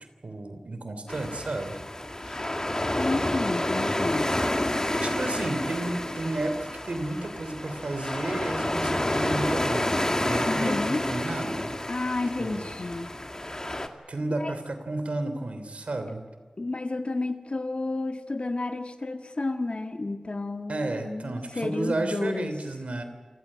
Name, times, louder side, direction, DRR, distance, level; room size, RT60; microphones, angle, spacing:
voice 1, 0.2-1.8 2.2-2.4 5.0-11.7 12.4-12.8 14.1-16.3 20.7-23.0, right 2 dB, 90° right, 8 dB, 3.0 m, -32 dB
sound 1, 1.1-13.9, left 1 dB, 30° left, 2.2 m, -29 dB
voice 2, 3.0-4.4 10.4-11.0 11.9-13.2 14.4-14.5 16.6-22.5, left 2 dB, 60° left, 7 dB, 1.8 m, -31 dB
27.5 x 15.5 x 8.7 m, 1.5 s
wide cardioid pair, 40°, 2 cm